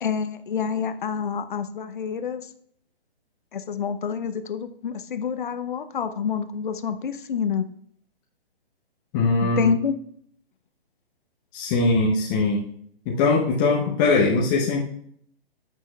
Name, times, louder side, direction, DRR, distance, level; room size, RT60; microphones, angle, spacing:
voice 1, 0.0-2.5 3.5-7.7 9.4-9.9, left 6 dB, 50° left, 10 dB, 0.7 m, -28 dB
voice 2, 9.1-9.7 11.5-12.7 13.1-14.8, left 3 dB, 20° left, -3 dB, 0.8 m, -21 dB
14.5 x 6.2 x 2.3 m, 0.65 s
figure-of-eight pair, 140°, 31 cm